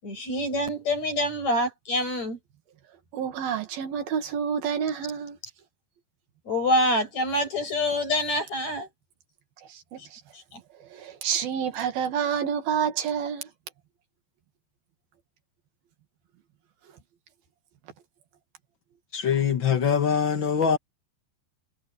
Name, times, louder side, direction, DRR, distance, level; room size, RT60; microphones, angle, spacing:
voice 1, 0.0-2.4 6.5-8.9 10.5-10.6, left 1 dB, 35° left, 8.4 m, -26 dB
voice 2, 3.1-5.4 9.7-10.2 10.7-13.5, right 7 dB, 60° right, 3.6 m, -29 dB
voice 3, 19.1-20.8, left 7 dB, 70° left, 1.1 m, -23 dB
omnidirectional pair, 5.2 m